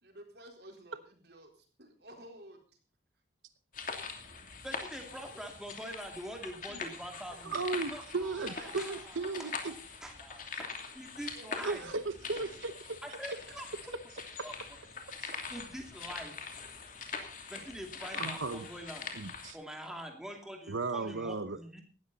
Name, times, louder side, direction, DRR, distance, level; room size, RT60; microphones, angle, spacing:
voice 1, 0.0-2.6 11.3-12.6 13.3-13.6, right 1 dB, 55° right, 3 dB, 4.1 m, -53 dB
sound 1, 3.7-19.5, left 5 dB, 45° left, 2.8 m, -43 dB
voice 2, 4.6-7.6 7.9-9.5 10.0-11.9 13.0-13.7 14.4-14.5 15.5-16.4 17.5-19.1 19.5-21.8, right 1 dB, 5° right, 2 dB, 2.5 m, -45 dB
voice 3, 7.4-9.7 11.6-12.7 15.2-15.4 18.2-18.7 19.2-19.6 20.7-21.8, right 3 dB, 85° right, 11 dB, 0.9 m, -36 dB
17.5 x 13.0 x 4.1 m, 0.39 s
head